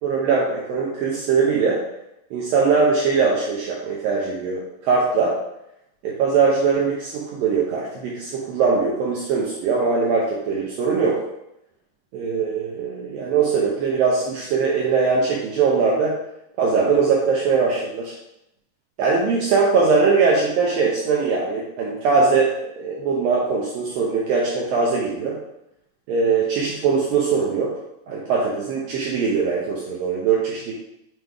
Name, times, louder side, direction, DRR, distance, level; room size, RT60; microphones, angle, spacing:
voice 1, 0.0-1.8 2.3-5.4 6.0-11.2 12.1-16.2 16.6-18.1 19.0-25.4 26.1-27.8 28.1-30.7, right 5 dB, 70° right, -4 dB, 2.3 m, -21 dB
8.2 x 3.5 x 4.6 m, 0.81 s
omnidirectional pair, 4.8 m